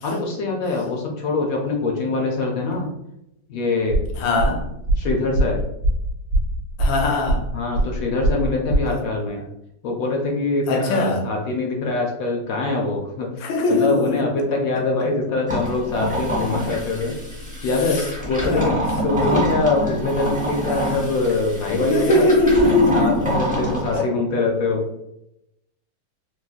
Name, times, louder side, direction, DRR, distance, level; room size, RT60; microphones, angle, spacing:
voice 1, 0.0-2.9 3.5-4.0 5.0-5.6 7.5-9.5 9.8-17.2 17.6-18.8 19.0-22.3 22.9-24.8, left 3 dB, 70° left, 0.8 m, -23 dB
sound 1, 3.9-8.9, right 1 dB, 60° right, 1.0 m, -22 dB
voice 2, 4.2-4.7 6.8-7.4 8.9-9.0 10.7-11.3 13.4-14.2 17.9-18.0 18.4-18.8 19.2-19.5 20.7-21.0 21.7-24.1, left 2 dB, 85° left, 1.3 m, -21 dB
sound 2, 15.5-24.0, equal, 10° right, 0.5 m, -26 dB
3.7 x 2.2 x 2.4 m
omnidirectional pair, 2.0 m